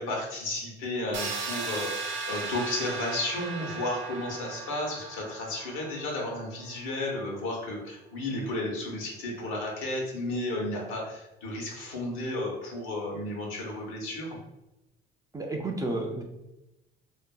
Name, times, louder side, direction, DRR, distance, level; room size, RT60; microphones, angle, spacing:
voice 1, 0.0-14.4, left 1 dB, 80° left, -1 dB, 0.9 m, -33 dB
sound 1, 1.1-6.9, right 4 dB, 65° right, 0.6 m, -37 dB
voice 2, 15.3-16.2, right 2 dB, 15° right, 2 dB, 0.4 m, -31 dB
2.5 x 2.4 x 2.3 m, 0.95 s
supercardioid pair, 80°, 21 cm